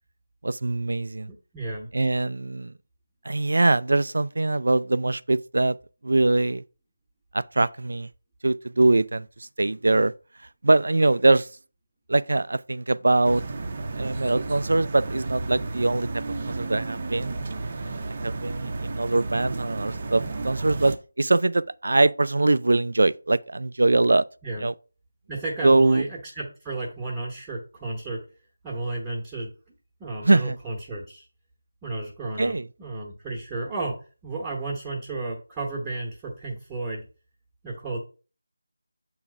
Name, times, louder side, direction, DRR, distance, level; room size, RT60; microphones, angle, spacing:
voice 1, 0.4-1.3 1.9-2.7 3.2-5.7 6.0-6.6 7.3-8.1 8.4-10.1 10.6-11.5 12.1-13.4 14.0-17.3 18.2-24.3 24.6-24.7 25.6-26.0 30.2-30.6 32.4-32.7, right 2 dB, 70° right, 0.3 m, -22 dB
voice 2, 1.3-1.9 24.4-24.6 25.3-28.2 28.6-29.5 30.0-31.3 31.8-37.0 37.6-38.0, right 2 dB, 10° right, 1.1 m, -33 dB
sound 1, 13.2-21.0, right 3 dB, 35° right, 0.7 m, -32 dB
7.4 x 3.1 x 4.9 m
figure-of-eight pair, 170°, 0 cm